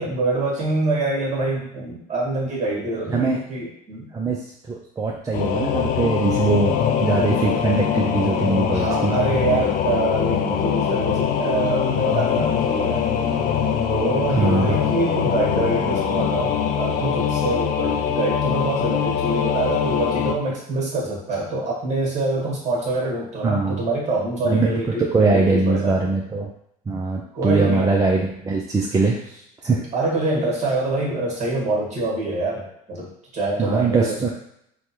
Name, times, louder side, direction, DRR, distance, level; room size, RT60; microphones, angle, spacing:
voice 1, 0.0-4.1 8.7-13.0 13.9-26.0 27.3-27.9 29.6-34.3, right 2 dB, 35° right, -2 dB, 1.5 m, -25 dB
voice 2, 3.1-3.4 4.1-4.4 4.7-9.1 14.4-14.8 23.4-23.8 24.4-26.5 26.9-29.8 33.6-34.3, right 3 dB, 15° right, -2 dB, 0.4 m, -22 dB
Singing / Musical instrument, 5.3-20.3, left 8 dB, 45° left, 0.4 m, -23 dB
3.3 x 2.2 x 2.9 m, 0.73 s
supercardioid pair, 90°, 19 cm